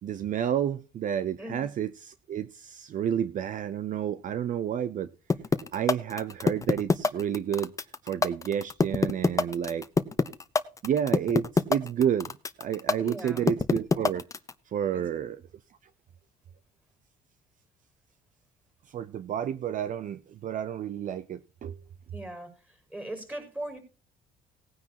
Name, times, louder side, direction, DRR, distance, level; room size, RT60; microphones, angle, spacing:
voice 1, 0.0-5.1 5.7-7.7 8.0-9.9 10.8-12.3 12.6-14.3 14.7-15.4 18.9-21.8, right 9 dB, 50° right, 0.7 m, -30 dB
sound 1, 5.3-14.5, left 4 dB, 20° left, 0.8 m, -24 dB
voice 2, 13.0-13.5 14.9-15.0 22.1-22.5 22.9-23.8, right 1 dB, 10° right, 5.3 m, -38 dB
18.5 x 9.6 x 2.9 m
cardioid pair, 110°, 17 cm